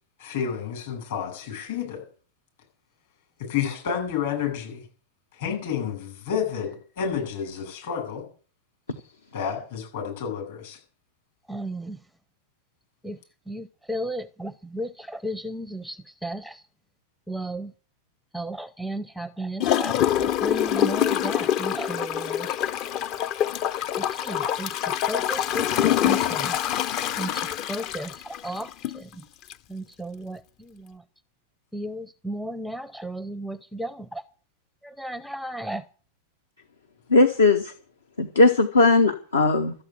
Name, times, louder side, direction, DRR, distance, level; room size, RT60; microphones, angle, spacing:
voice 1, 0.2-2.0 3.4-4.8 5.4-8.3 9.3-10.8, left 7 dB, 55° left, 7.6 m, -30 dB
voice 2, 11.5-12.0 13.0-13.2 13.5-16.6 17.3-17.7 18.3-22.6 24.0-26.6 27.2-29.2 29.7-31.0 31.7-34.2 34.8-35.8, right 1 dB, ahead, 0.6 m, -34 dB
Gurgling / Toilet flush, 19.6-29.0 29.5-29.6, left 10 dB, 40° left, 0.7 m, -25 dB
voice 3, 37.1-37.7 38.2-39.7, left 3 dB, 70° left, 1.2 m, -18 dB
13.5 x 8.0 x 9.7 m
figure-of-eight pair, 90°, 0 cm